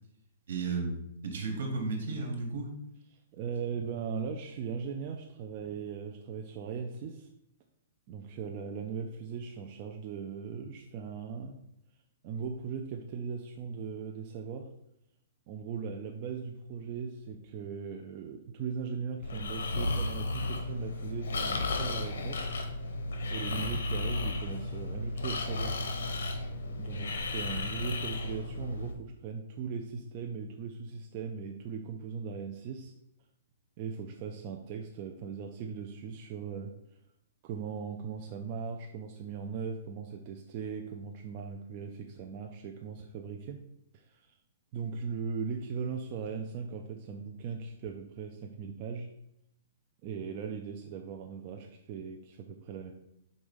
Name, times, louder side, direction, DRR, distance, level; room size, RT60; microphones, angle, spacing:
voice 1, 0.5-2.7 26.9-27.2, right 3 dB, 65° right, 3 dB, 1.6 m, -34 dB
voice 2, 3.3-7.3 8.1-11.6 12.2-14.7 15.5-22.5 23.3-25.7 26.8-32.9 33.8-36.7 37.4-43.6 43.9-44.4 44.7-49.1 50.0-52.9, right 6 dB, 30° right, 2 dB, 0.4 m, -39 dB
Breathing, 19.2-28.9, left 2 dB, 85° left, 1.0 m, -34 dB
5.0 x 4.0 x 5.4 m, 0.79 s
hypercardioid pair, 170°, 0 cm